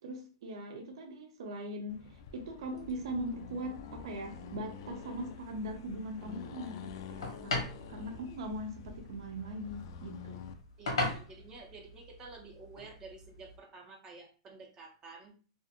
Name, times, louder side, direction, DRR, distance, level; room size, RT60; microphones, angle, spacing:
voice 1, 0.0-10.4, right 1 dB, 70° right, 3 dB, 0.6 m, -40 dB
Accelerating revving vroom, 1.9-10.6, left 7 dB, 55° left, 0.3 m, -48 dB
sound 1, 2.7-13.6, left 2 dB, 90° left, 1.0 m, -42 dB
voice 2, 10.8-15.3, right 4 dB, 20° right, 2 dB, 0.5 m, -51 dB
2.4 x 2.4 x 2.7 m, 0.38 s
supercardioid pair, 150°, 3 cm